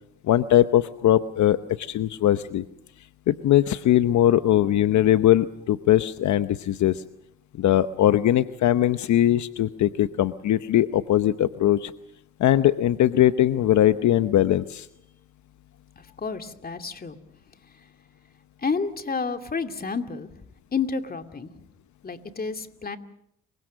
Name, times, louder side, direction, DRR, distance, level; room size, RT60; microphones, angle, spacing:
voice 1, 0.3-2.6 3.3-7.0 7.6-11.9 12.4-14.9, left 12 dB, 70° left, 11 dB, 0.9 m, -20 dB
voice 2, 16.0-17.2 18.6-20.3 20.7-21.5 22.0-23.0, left 5 dB, 30° left, 6 dB, 2.5 m, -30 dB
30.0 x 24.0 x 6.4 m, 0.74 s
cardioid pair, 90°, 30 cm